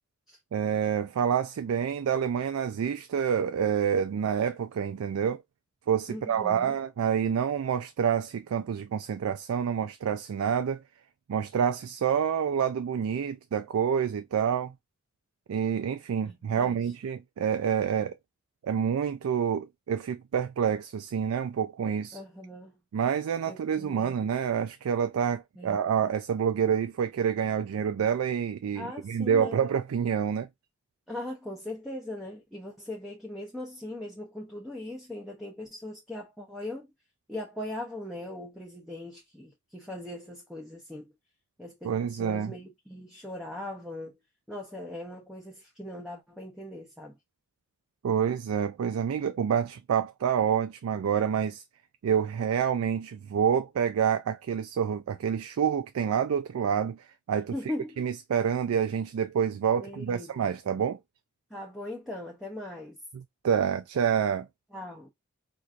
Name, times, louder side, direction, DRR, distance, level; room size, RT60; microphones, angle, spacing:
voice 1, 0.5-5.4 5.9-10.8 11.3-14.7 15.5-18.1 18.6-22.2 22.9-30.5 41.8-42.5 48.0-51.6 52.0-57.5 58.0-61.0 63.4-64.5, right 7 dB, 80° right, 0.3 m, -27 dB
voice 2, 6.1-6.8 16.2-16.9 22.1-22.8 23.5-24.2 25.6-25.8 28.7-29.6 31.1-36.9 37.3-41.1 41.6-44.2 44.5-47.2 57.5-57.9 59.8-60.5 61.5-63.0 64.7-65.1, left 1 dB, ahead, 0.6 m, -40 dB
4.4 x 2.5 x 2.5 m
head